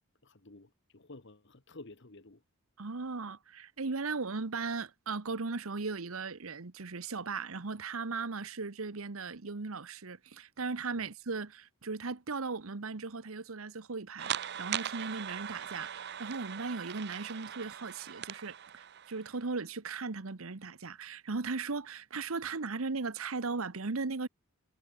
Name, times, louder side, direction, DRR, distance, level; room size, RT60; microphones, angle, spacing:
voice 1, 0.2-2.4 10.9-11.1, left 2 dB, 55° left, 1.5 m, -52 dB
voice 2, 2.8-24.3, right 4 dB, 80° right, 1.1 m, -37 dB
sound 1, 14.2-19.4, right 9 dB, 50° right, 0.6 m, -40 dB
head